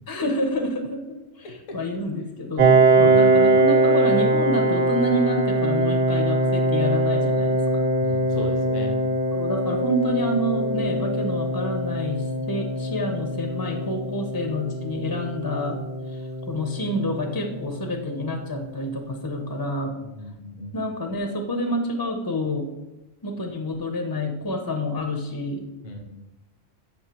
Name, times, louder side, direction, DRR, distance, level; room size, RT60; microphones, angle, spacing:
voice 1, 0.1-7.8 9.3-16.2 16.5-19.9 20.7-22.7 23.2-25.6, left 1 dB, 30° left, 4 dB, 0.4 m, -28 dB
voice 2, 1.4-1.8 3.0-3.5 8.0-9.0 20.0-20.8 25.8-26.0, left 1 dB, 85° left, 3 dB, 1.3 m, -35 dB
Piano, 2.6-17.9, right 2 dB, 45° right, 0.9 m, -22 dB
7.9 x 5.3 x 2.9 m, 1.1 s
omnidirectional pair, 1.3 m